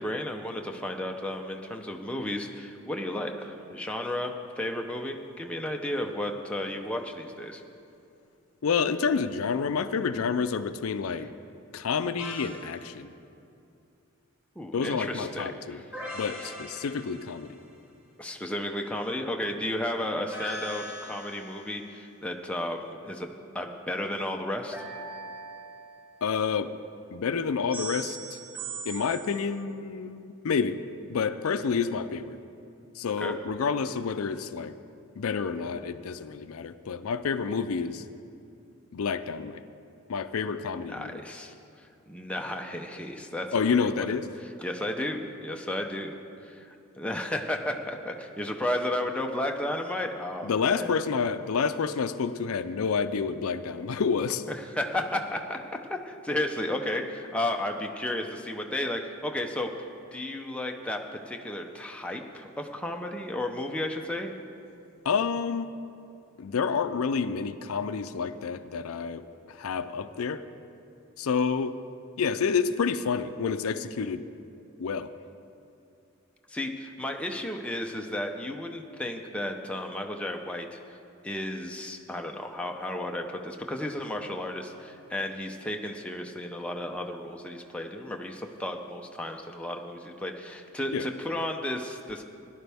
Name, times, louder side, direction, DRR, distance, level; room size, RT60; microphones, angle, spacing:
voice 1, 0.0-7.6 14.6-15.9 16.4-16.5 18.2-24.8 33.2-33.3 40.9-44.2 44.4-46.1 46.4-50.9 54.5-55.6 55.9-59.7 60.1-64.3 76.5-81.0 81.2-92.2, left 1 dB, 5° left, 2 dB, 0.6 m, -33 dB
voice 2, 8.6-11.3 11.7-13.1 14.7-15.8 16.1-17.6 26.2-26.7 27.1-28.4 28.8-30.8 31.1-32.4 33.0-34.7 35.2-38.0 38.9-39.6 40.1-41.1 43.5-44.3 50.4-54.4 65.0-65.7 66.4-70.4 71.2-71.8 72.2-74.3 74.8-75.1 90.9-91.1, left 5 dB, 85° left, 12 dB, 0.5 m, -29 dB
sound 1, 12.2-12.7 15.9-17.6 20.3-21.7 24.7-26.2 27.7-29.4, right 2 dB, 10° right, 2.2 m, -40 dB
17.5 x 11.0 x 3.5 m, 2.6 s
head